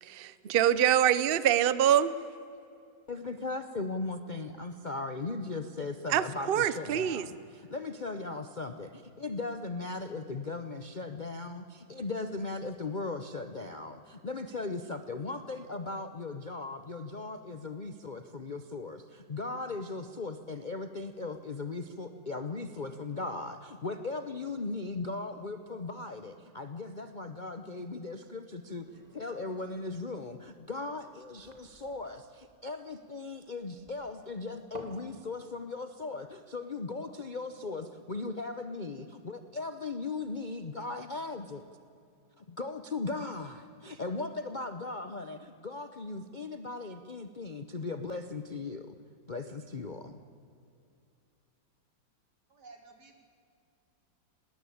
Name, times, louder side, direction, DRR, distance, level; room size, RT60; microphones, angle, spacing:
voice 1, 0.0-2.2 6.1-7.2, right 10 dB, 85° right, 16 dB, 0.5 m, -25 dB
voice 2, 3.1-41.6 42.4-48.9 49.3-50.2, left 3 dB, 40° left, 8 dB, 0.6 m, -38 dB
sound 1, 28.6-35.1, right 1 dB, 20° right, 2.3 m, -53 dB
voice 3, 52.5-53.2, right 3 dB, 60° right, 4 dB, 3.2 m, -53 dB
19.5 x 19.0 x 8.6 m, 2.5 s
omnidirectional pair, 2.0 m